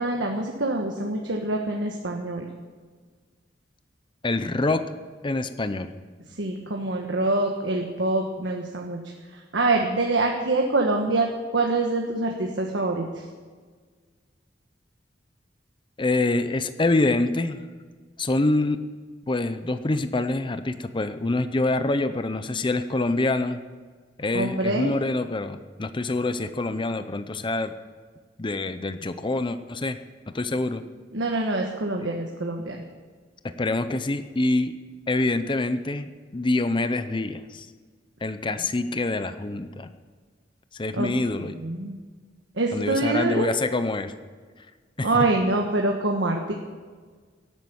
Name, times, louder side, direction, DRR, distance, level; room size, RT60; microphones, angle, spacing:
voice 1, 0.0-2.4 6.4-9.0 9.3-13.2 24.3-24.9 31.1-32.8 40.9-41.1 41.5-41.9 42.5-43.5 45.0-46.5, right 2 dB, 75° right, 1 dB, 1.4 m, -25 dB
voice 2, 4.2-4.8 5.2-5.9 16.0-17.6 18.2-18.8 19.3-23.6 24.2-27.7 28.4-30.0 30.3-30.8 32.0-32.1 33.6-34.7 35.1-37.7 38.2-39.9 40.7-41.6 42.7-44.1 45.0-45.1, left 2 dB, 25° left, 10 dB, 0.6 m, -26 dB
17.5 x 9.1 x 7.1 m, 1.5 s
head